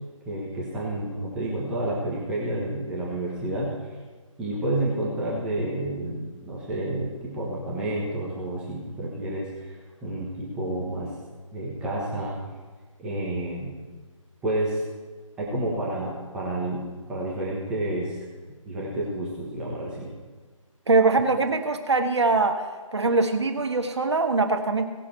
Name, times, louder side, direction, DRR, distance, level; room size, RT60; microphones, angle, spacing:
voice 1, 0.3-3.7 4.4-9.8 10.0-11.1 11.5-12.4 13.0-13.7 14.4-14.8 15.4-16.8 17.1-18.2 18.6-20.1, right 1 dB, 5° right, -6 dB, 1.1 m, -30 dB
voice 2, 20.9-22.6 22.9-24.8, right 3 dB, 55° right, 5 dB, 1.3 m, -22 dB
17.5 x 6.1 x 4.5 m, 1.4 s
figure-of-eight pair, 155°, 17 cm